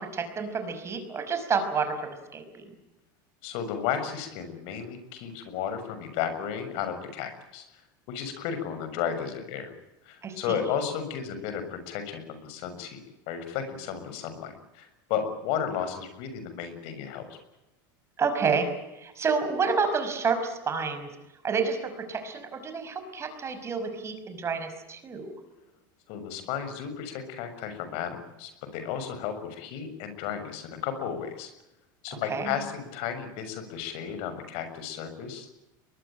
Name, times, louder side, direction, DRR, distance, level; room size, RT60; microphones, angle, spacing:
voice 1, 0.0-2.6 10.2-10.6 18.2-18.7 19.0-21.1 21.4-25.3 32.3-32.5, right 5 dB, 25° right, 8 dB, 5.6 m, -29 dB
voice 2, 3.4-7.7 8.1-9.7 10.0-13.0 13.3-17.4 26.1-31.5 32.0-35.5, left 8 dB, 60° left, 9 dB, 6.7 m, -33 dB
23.5 x 21.5 x 9.1 m, 0.96 s
supercardioid pair, 135°, 11 cm